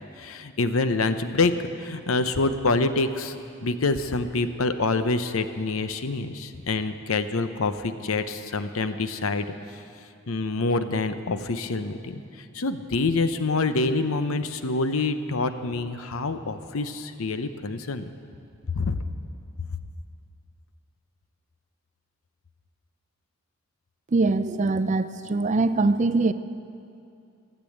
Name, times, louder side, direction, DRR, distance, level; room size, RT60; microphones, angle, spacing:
voice 1, 0.2-1.5 1.8-3.3 3.6-9.5 10.3-12.2 12.5-18.0 18.7-19.0, left 3 dB, 70° left, 10 dB, 0.7 m, -26 dB
voice 2, 24.1-26.3, right 3 dB, 35° right, 12 dB, 0.4 m, -22 dB
15.5 x 8.3 x 8.6 m, 2.5 s
head